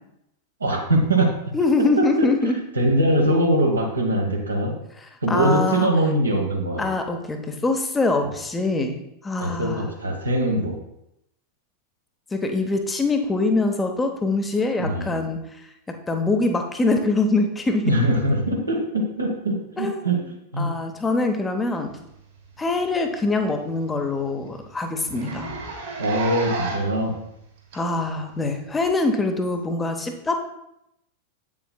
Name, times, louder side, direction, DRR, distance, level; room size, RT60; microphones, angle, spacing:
voice 1, 0.6-1.3 2.0-2.2 2.7-4.7 5.2-6.9 9.4-10.7 14.8-15.3 17.8-20.2 20.5-20.7 26.0-27.2, right 1 dB, 80° right, 0 dB, 1.2 m, -22 dB
voice 2, 1.5-2.5 5.3-5.9 6.8-8.9 9.2-9.8 12.3-15.4 15.9-17.8 19.8-20.1 20.6-21.9 22.6-25.5 27.7-30.4, left 3 dB, 15° left, 5 dB, 0.8 m, -23 dB
Zipper (clothing), 22.4-22.6 22.9-23.0 23.4-23.5 23.9-24.0 24.2-24.4 25.0-27.0 27.7-27.8 28.8-28.9, right 3 dB, 60° right, 1.7 m, -31 dB
8.0 x 7.2 x 2.3 m, 0.82 s
figure-of-eight pair, 90°, 0 cm